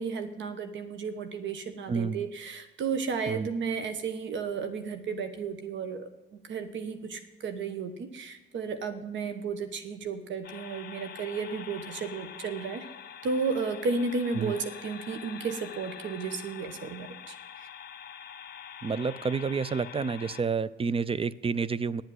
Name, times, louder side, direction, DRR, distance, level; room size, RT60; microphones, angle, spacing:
voice 1, 0.0-6.1 6.4-12.9 13.2-17.7, right 5 dB, 70° right, 9 dB, 1.2 m, -33 dB
voice 2, 1.9-2.2 3.3-3.5 14.3-14.5 18.8-22.0, right 5 dB, 30° right, 19 dB, 0.5 m, -29 dB
sound 1, 10.4-20.4, left 8 dB, 55° left, 1.2 m, -45 dB
10.5 x 7.9 x 9.7 m, 1.1 s
cardioid pair, 90°, 20 cm